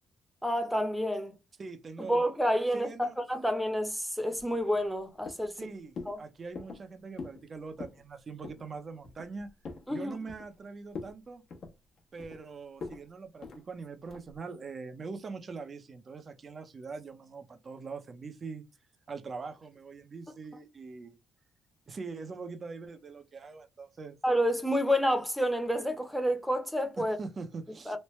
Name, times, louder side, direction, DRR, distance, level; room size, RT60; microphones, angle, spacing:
voice 1, 0.4-1.3 2.1-5.5 6.1-6.2 9.9-10.2 24.2-27.2 27.9-28.0, equal, ahead, 0.8 m, -29 dB
voice 2, 1.6-2.2 2.7-3.1 5.5-9.5 9.9-11.4 12.1-18.6 19.1-21.2 21.9-24.2 27.0-28.0, right 4 dB, 40° right, 0.6 m, -43 dB
sound 1, 4.4-5.0 5.3-5.6 6.0-6.2 6.6-6.9 7.2-7.4 7.7-8.0 8.4-8.7 9.0-9.9 10.3-10.6 10.9-11.2 11.5-12.4 12.8-13.0 13.4-13.6 14.1-14.4, left 4 dB, 65° left, 0.9 m, -43 dB
3.1 x 2.1 x 3.0 m
cardioid pair, 90°, 0 cm